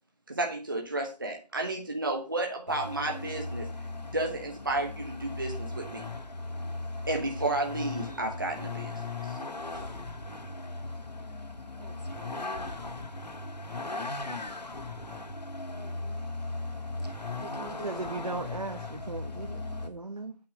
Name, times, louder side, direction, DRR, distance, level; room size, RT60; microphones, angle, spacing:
voice 1, 0.3-3.7 4.1-6.1 7.1-9.4 9.7-9.8, right 2 dB, 30° right, 2 dB, 1.0 m, -32 dB
Vehicle, 2.7-19.9, left 2 dB, 80° left, 1.5 m, -38 dB
voice 2, 11.8-12.7 15.7-16.3 17.0-17.1 17.4-17.8, right 3 dB, 75° right, 3 dB, 2.8 m, -48 dB
voice 3, 17.8-20.4, right 3 dB, 55° right, 4 dB, 1.2 m, -37 dB
8.8 x 6.2 x 6.3 m, 0.31 s
figure-of-eight pair, 180°, 21 cm